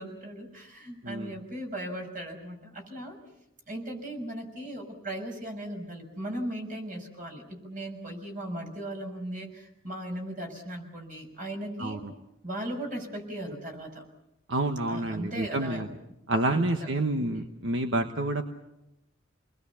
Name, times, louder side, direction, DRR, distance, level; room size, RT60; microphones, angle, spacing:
voice 1, 0.0-3.2 3.7-12.0 12.4-13.9 14.9-15.8 16.5-16.9, right 1 dB, 45° right, 3 dB, 6.2 m, -37 dB
voice 2, 1.0-1.3 11.8-12.1 14.5-15.9 16.3-18.4, right 2 dB, 70° right, 5 dB, 1.3 m, -28 dB
29.0 x 21.0 x 7.2 m, 0.90 s
head